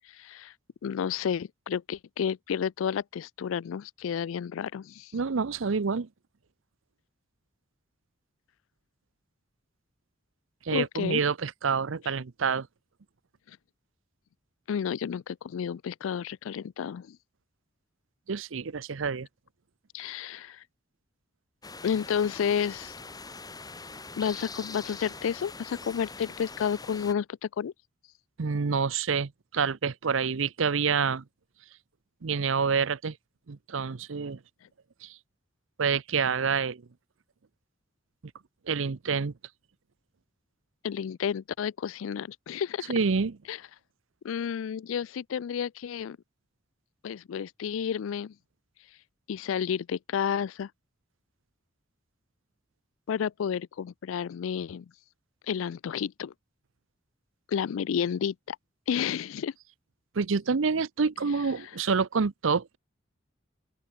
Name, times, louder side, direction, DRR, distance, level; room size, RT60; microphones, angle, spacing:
voice 1, 0.1-0.5 0.8-5.1 10.7-11.2 12.0-12.1 14.7-17.2 19.9-20.6 21.8-22.9 24.2-27.7 40.8-42.9 43.5-43.6 44.2-46.2 47.0-48.3 49.3-50.7 53.1-54.9 55.5-56.3 57.5-58.6 58.9-59.5, left 7 dB, 85° left, 0.4 m, -31 dB
voice 2, 5.1-6.1 10.7-12.7 18.3-19.3 28.4-31.2 32.2-33.2 33.5-34.4 35.0-35.1 35.8-36.8 38.7-39.3 42.9-43.4 60.2-62.8, right 5 dB, 80° right, 0.7 m, -27 dB
sound 1, 21.6-27.1, left 4 dB, 20° left, 2.1 m, -43 dB
open air
head